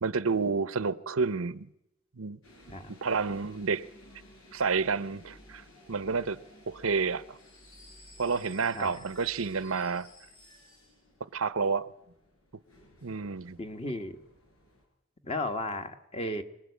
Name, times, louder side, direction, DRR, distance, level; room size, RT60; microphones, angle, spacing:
voice 1, 0.0-1.7 2.2-2.4 2.9-3.9 4.5-5.6 5.9-7.4 8.2-10.1 11.3-11.9 13.0-13.6, right 5 dB, 85° right, 0.9 m, -30 dB
sound 1, 2.4-14.8, left 1 dB, 85° left, 8.0 m, -55 dB
voice 2, 13.6-14.2 15.2-16.4, left 1 dB, 30° left, 1.6 m, -34 dB
25.5 x 20.0 x 8.4 m
head